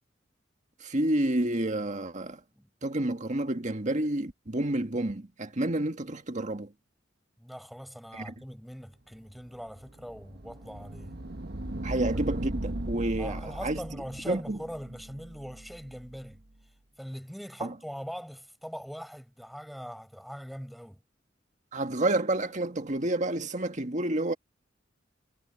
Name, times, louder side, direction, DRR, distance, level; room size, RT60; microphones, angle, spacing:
voice 1, 0.8-2.4 2.8-6.7 8.1-8.3 11.8-13.8 14.3-14.6 17.6-17.7 21.7-24.3, right 1 dB, 40° right, 1.8 m, -29 dB
voice 2, 7.4-11.1 11.9-12.0 13.2-16.4 17.0-21.0, equal, ahead, 7.2 m, -42 dB
sound 1, 9.4-16.3, right 1 dB, 55° right, 1.3 m, -38 dB
head